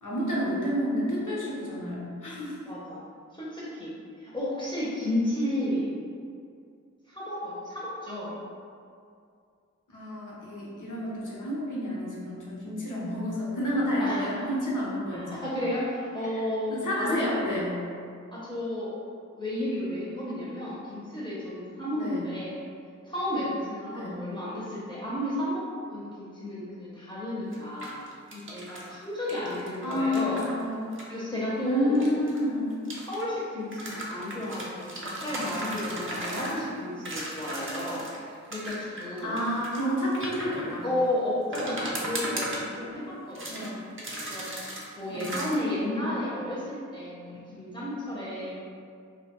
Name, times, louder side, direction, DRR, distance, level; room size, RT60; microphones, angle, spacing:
voice 1, 0.0-2.6 9.9-15.5 16.7-17.7 21.9-22.2 23.9-24.2 29.8-30.9 31.6-32.8 38.9-40.9 43.5-43.8 45.1-45.4, equal, 85° left, -6 dB, 0.6 m, -30 dB
voice 2, 2.7-3.0 3.3-5.9 7.1-8.3 14.0-14.5 15.1-17.3 18.3-18.9 19.3-22.5 23.1-28.0 28.3-30.4 31.1-32.0 33.1-38.1 38.5-39.4 40.8-43.7 44.0-48.5, left 1 dB, 15° left, -9 dB, 0.5 m, -32 dB
sound 1, 27.5-28.9 29.3-31.0 32.0-33.2 33.7-36.7 37.0-38.2 38.5-40.9 41.5-43.0 43.3-43.7 44.0-44.9 45.2-45.6, right 1 dB, 45° right, 0.5 m, -36 dB
2.5 x 2.1 x 2.8 m, 2.3 s
wide cardioid pair, 50°, 30 cm